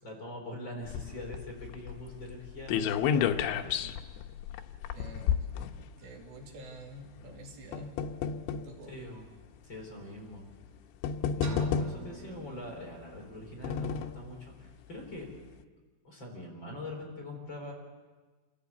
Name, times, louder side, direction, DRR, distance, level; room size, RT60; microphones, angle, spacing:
voice 1, 0.0-3.9 8.9-9.2 9.6-10.4 11.3-15.3 16.0-17.7, left 1 dB, 25° left, -1 dB, 4.5 m, -43 dB
sound 1, 0.9-6.3 7.2-8.7 9.5-9.6 10.6-10.7 11.0-12.2 13.2-14.3 14.7-14.8 15.1-15.2, left 7 dB, 90° left, 3.1 m, -32 dB
voice 2, 4.9-5.5 5.7-8.0 8.6-9.0, right 1 dB, 80° right, 1 dB, 4.7 m, -48 dB
sound 2, 11.4-13.4, left 3 dB, 50° right, 4.0 m, -43 dB
27.5 x 14.5 x 8.2 m, 1.4 s
omnidirectional pair, 5.0 m